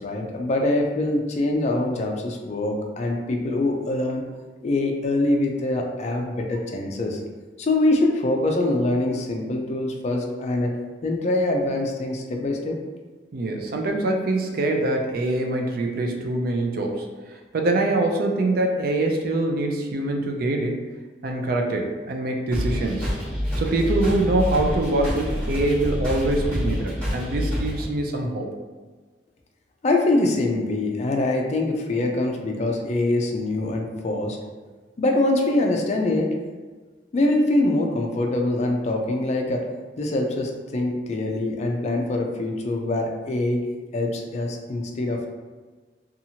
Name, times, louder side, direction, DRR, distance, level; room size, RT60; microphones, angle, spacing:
voice 1, 0.0-4.3 4.6-7.2 7.6-10.7 11.0-12.8 29.8-34.4 35.0-36.3 37.1-39.6 40.0-43.6 43.9-45.3, left 2 dB, 40° left, 1 dB, 0.4 m, -24 dB
voice 2, 13.3-17.1 17.5-20.8 21.2-23.1 23.6-28.5, right 2 dB, 55° right, 2 dB, 0.4 m, -24 dB
sound 1, 22.5-27.9, equal, 10° left, 1.3 m, -27 dB
2.8 x 2.4 x 2.7 m, 1.3 s
head